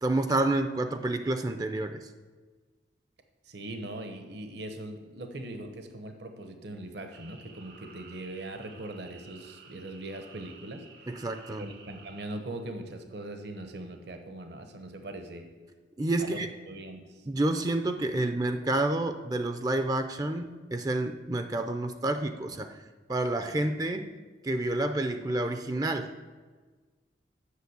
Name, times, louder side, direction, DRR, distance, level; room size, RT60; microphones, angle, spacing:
voice 1, 0.0-2.1 11.1-11.6 16.0-16.5 17.3-22.8 23.1-24.1 24.4-26.1, right 2 dB, 20° right, 8 dB, 0.4 m, -29 dB
voice 2, 3.4-11.2 11.5-15.5 16.2-17.3, right 1 dB, 65° right, 6 dB, 1.0 m, -41 dB
sound 1, 7.1-12.3, right 5 dB, 85° right, 2.0 m, -53 dB
8.2 x 6.6 x 8.0 m, 1.4 s
head